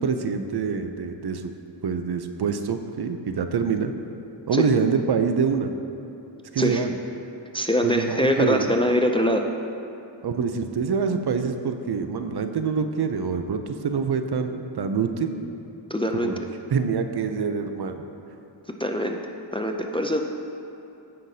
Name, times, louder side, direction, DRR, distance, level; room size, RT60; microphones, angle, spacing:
voice 1, 0.0-1.5 1.8-3.9 4.5-5.7 6.5-6.9 7.8-8.7 10.2-15.4 16.1-16.4 16.7-18.0, right 5 dB, 55° right, 7 dB, 0.6 m, -25 dB
voice 2, 7.5-9.4 15.9-16.3 18.8-19.2 19.5-20.4, left 1 dB, 15° left, 3 dB, 0.3 m, -23 dB
15.5 x 5.8 x 2.7 m, 2.8 s
wide cardioid pair, 115°, 46 cm